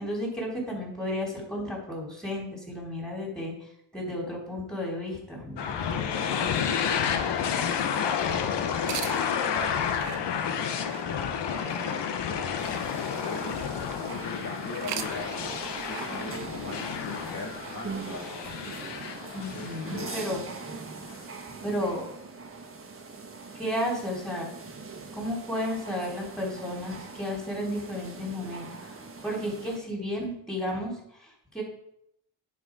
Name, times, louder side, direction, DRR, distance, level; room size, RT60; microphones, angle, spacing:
voice 1, 0.0-5.9 19.3-20.4 21.5-22.1 23.5-24.5 25.1-31.6, equal, ahead, -3 dB, 3.6 m, -33 dB
sound 1, 5.6-20.5, left 7 dB, 75° left, 1.0 m, -31 dB
voice 2, 5.8-9.9 10.2-12.6 13.0-13.8 14.1-15.3 15.9-18.4 19.4-20.3, left 3 dB, 50° left, -2 dB, 1.9 m, -41 dB
sound 2, 8.7-14.1 14.6-18.6, right 10 dB, 75° right, 0.8 m, -43 dB
sound 3, 12.6-29.8, right 4 dB, 30° right, 1.4 m, -42 dB
9.5 x 4.9 x 4.8 m, 0.75 s
cardioid pair, 100°, 43 cm